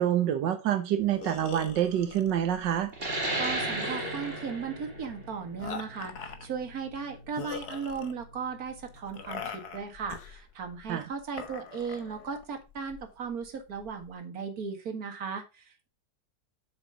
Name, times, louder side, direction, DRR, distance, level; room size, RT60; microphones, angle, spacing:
voice 1, 0.0-2.9 10.9-11.1, right 10 dB, 90° right, 1.6 m, -27 dB
sound 1, 1.0-14.1, left 6 dB, 65° left, 1.7 m, -44 dB
sound 2, 2.9-8.1, right 2 dB, 35° right, 2.5 m, -35 dB
voice 2, 3.4-15.9, right 6 dB, 55° right, 2.2 m, -37 dB
7.5 x 6.9 x 4.9 m
omnidirectional pair, 1.9 m